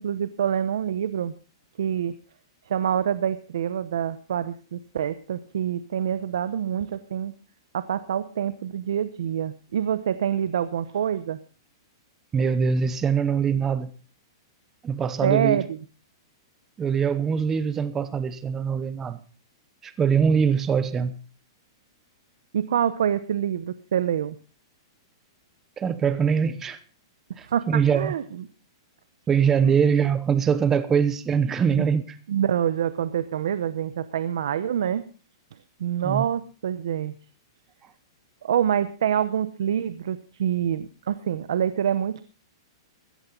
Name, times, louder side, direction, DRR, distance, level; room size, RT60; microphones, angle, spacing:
voice 1, 0.0-1.3 1.8-2.1 2.7-7.3 7.7-11.4 15.2-15.8 22.5-24.3 27.4-28.4 29.6-29.8 31.8-31.9 32.3-35.0 35.8-37.1 38.4-42.2, right 9 dB, 75° right, 0.8 m, -26 dB
voice 2, 12.3-13.9 14.8-15.6 16.8-19.2 19.8-21.1 25.8-26.8 27.4-28.1 29.3-32.0 36.0-36.2, right 6 dB, 15° right, 0.8 m, -23 dB
15.0 x 14.5 x 3.8 m
hypercardioid pair, 165°, 2 cm